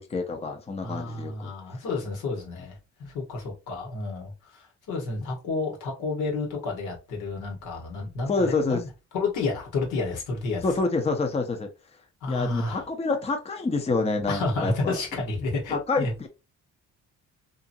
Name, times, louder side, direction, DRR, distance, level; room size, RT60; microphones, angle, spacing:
voice 1, 0.1-1.5 8.3-8.8 10.6-11.7 12.3-15.0 15.7-16.3, left 3 dB, 20° left, 0.6 m, -27 dB
voice 2, 0.8-8.8 9.1-10.7 12.2-12.8 14.3-16.1, left 3 dB, 90° left, 1.4 m, -30 dB
2.8 x 2.6 x 2.6 m
cardioid pair, 90°, 30 cm